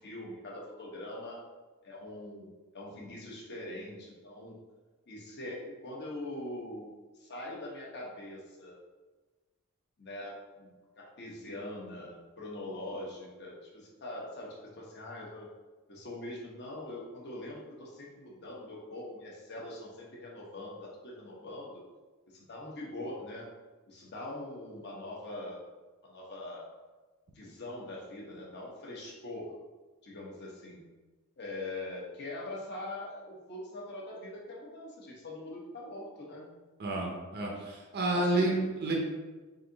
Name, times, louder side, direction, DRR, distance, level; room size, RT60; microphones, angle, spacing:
voice 1, 0.0-1.4 1.8-4.6 5.1-6.9 7.2-8.8 10.0-15.5 15.9-21.8 22.3-23.5 23.9-25.7 26.0-26.6 27.3-29.5 30.0-30.8 31.4-36.5 38.1-38.9, left 1 dB, 50° left, -3 dB, 0.9 m, -42 dB
voice 2, 36.8-38.5 38.8-38.9, right 2 dB, 50° right, -1 dB, 0.6 m, -30 dB
3.9 x 2.7 x 3.8 m, 1.3 s
head